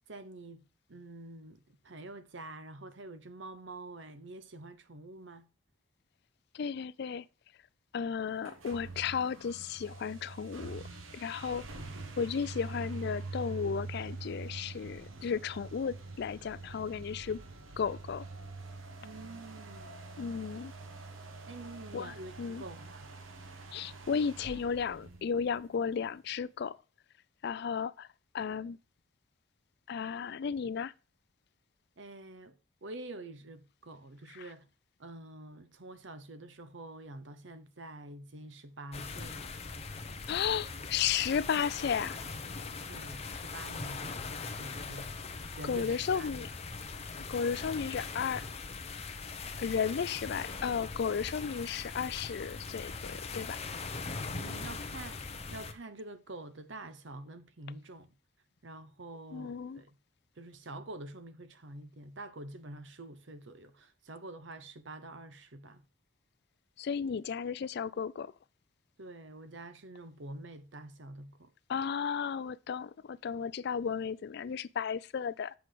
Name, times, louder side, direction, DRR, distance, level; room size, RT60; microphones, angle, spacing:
voice 1, 0.1-5.5 19.0-19.9 21.5-23.1 32.0-34.7 35.0-39.5 42.9-44.2 44.6-45.2 45.6-46.5 54.4-58.1 58.6-60.0 60.4-65.8 69.0-71.5, right 2 dB, 65° right, 0.9 m, -47 dB
voice 2, 6.5-7.2 7.9-10.8 11.1-11.7 12.2-17.4 17.8-18.3 20.2-20.7 21.9-22.6 23.7-26.8 27.4-28.1 28.3-28.8 29.9-30.9 34.3-34.5 40.3-42.2 45.6-46.5 47.2-48.4 49.6-53.6 59.3-59.8 66.8-68.3 71.7-75.5, left 6 dB, 55° left, 0.4 m, -34 dB
sound 1, 8.4-25.9, right 3 dB, 80° right, 1.2 m, -45 dB
sound 2, 38.9-55.7, left 4 dB, 30° left, 0.9 m, -41 dB
7.9 x 6.0 x 4.9 m
head